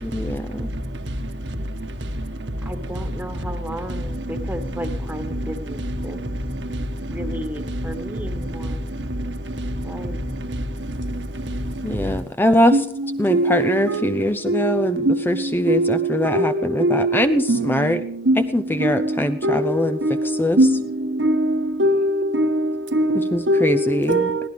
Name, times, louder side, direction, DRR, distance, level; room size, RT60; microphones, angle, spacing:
voice 1, 0.0-0.7 11.8-12.8 13.2-18.0 18.5-20.0 20.4-20.6 23.1-24.3, left 1 dB, 10° left, 0.5 m, -22 dB
voice 2, 2.6-6.2 7.1-8.9 9.8-10.2, equal, 10° right, 1.5 m, -34 dB
voice 3, 13.3-14.1 14.5-15.2 15.7-17.7 18.3-18.5 18.8-18.9 19.4-19.7 20.0-20.3 20.6-20.8 21.2-21.5 21.8-24.4, right 1 dB, 80° right, 1.5 m, -20 dB
22.0 x 16.5 x 3.4 m
head